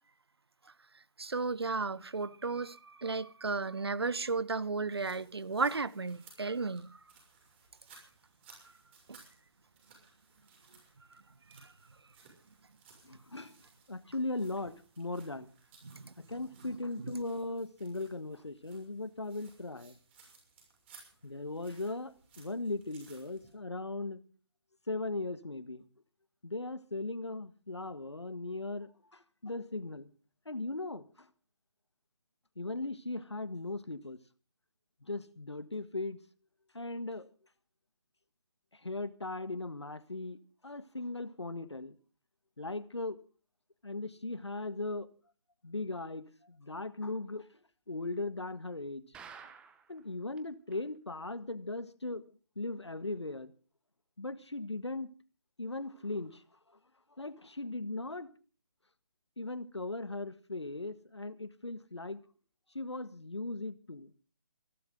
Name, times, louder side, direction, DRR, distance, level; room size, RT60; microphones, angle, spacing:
voice 1, 1.2-7.0 9.1-9.2 11.5-11.6 15.8-16.1 17.0-17.1, right 4 dB, 65° right, 1.1 m, -34 dB
sound 1, 4.9-23.5, right 4 dB, 25° right, 6.3 m, -61 dB
voice 2, 13.0-13.6 13.9-15.5 16.3-20.0 21.2-24.2 24.9-25.9 26.4-30.1 30.4-31.3 32.5-34.2 35.1-36.2 36.7-37.3 38.7-41.9 42.6-43.2 43.8-45.1 45.6-47.4 47.9-49.0 49.9-52.3 52.5-53.5 54.2-55.1 55.6-56.4 57.2-58.3 59.4-62.2 62.7-64.1, left 2 dB, 80° left, 1.7 m, -38 dB
sound 2, 49.1-50.0 50.4-50.5 50.7-50.8 51.3-51.4, right 6 dB, 5° right, 1.0 m, -50 dB
27.5 x 12.0 x 3.8 m
figure-of-eight pair, 145°, 14 cm